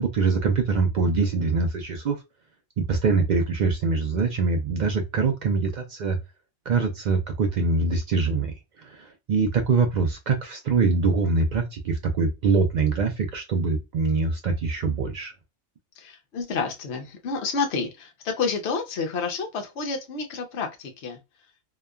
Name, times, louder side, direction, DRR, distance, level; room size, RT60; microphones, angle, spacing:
voice 1, 0.0-2.2 2.8-6.2 6.7-15.3, right 4 dB, 65° right, 0.4 m, -24 dB
voice 2, 16.0-21.2, left 4 dB, 65° left, 0.9 m, -29 dB
2.8 x 2.2 x 2.2 m
omnidirectional pair, 1.3 m